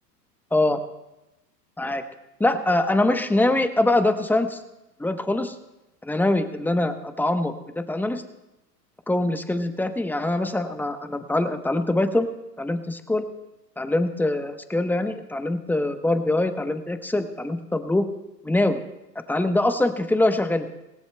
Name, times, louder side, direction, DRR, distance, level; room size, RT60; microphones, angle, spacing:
voice 1, 2.4-4.6 5.0-5.5 6.0-8.2 9.1-12.3 12.6-13.3 13.8-18.1 18.4-18.8 19.3-20.7, left 2 dB, 5° left, 8 dB, 0.9 m, -23 dB
26.5 x 17.5 x 2.3 m, 0.96 s
hypercardioid pair, 105°, 50 cm